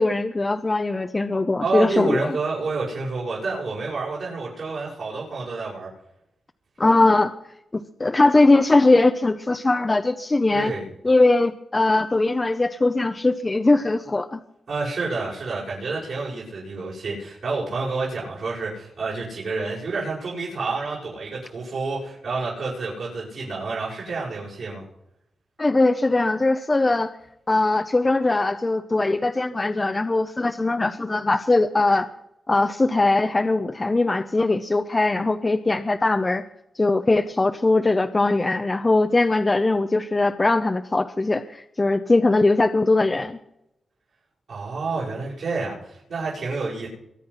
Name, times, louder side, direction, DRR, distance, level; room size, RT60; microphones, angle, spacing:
voice 1, 0.0-2.3 6.8-7.3 7.7-10.7 11.0-14.4 25.6-27.1 27.5-32.1 32.5-36.4 36.8-43.4, left 2 dB, 25° left, 8 dB, 0.8 m, -20 dB
voice 2, 1.6-5.9 10.5-10.9 14.7-24.9 44.5-46.9, right 3 dB, 70° right, -7 dB, 7.0 m, -29 dB
23.5 x 8.4 x 5.8 m, 0.79 s
cardioid pair, 85°, 0 cm